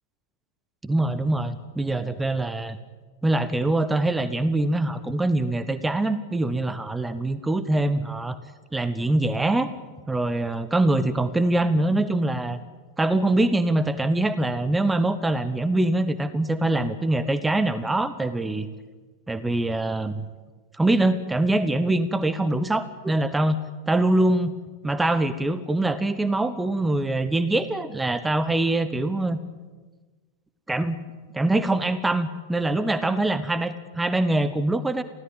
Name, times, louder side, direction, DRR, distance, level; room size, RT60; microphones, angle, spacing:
voice 1, 0.8-2.8 3.2-8.4 8.7-9.7 10.1-12.6 13.0-18.7 19.3-20.3 20.7-23.6 23.9-24.6 24.8-29.4 30.7-31.0 31.3-35.0, right 2 dB, 10° right, 14 dB, 1.1 m, -23 dB
24.0 x 16.5 x 8.9 m, 1.3 s
figure-of-eight pair, 90°, 0 cm